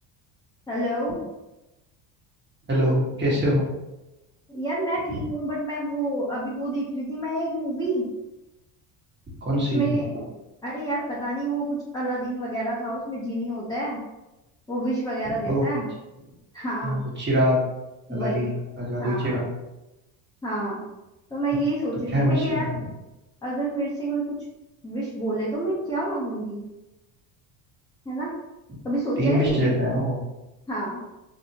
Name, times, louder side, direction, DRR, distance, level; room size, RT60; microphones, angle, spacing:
voice 1, 0.7-1.2 4.5-8.0 9.7-10.1 10.6-14.0 14.7-15.9 16.5-17.0 18.1-18.5 19.0-19.4 20.4-20.8 21.3-22.7 23.4-24.4 24.8-26.6 28.0-28.3 28.8-29.6 30.7-31.0, right 1 dB, 10° left, -7 dB, 0.6 m, -28 dB
voice 2, 2.7-3.6 5.1-5.2 9.4-9.9 15.4-15.7 16.8-17.6 18.1-18.5 18.8-19.4 22.1-22.8 28.7-28.8 29.2-30.2, equal, 20° right, -6 dB, 1.3 m, -23 dB
2.7 x 2.1 x 2.7 m, 0.99 s
supercardioid pair, 95°, 49 cm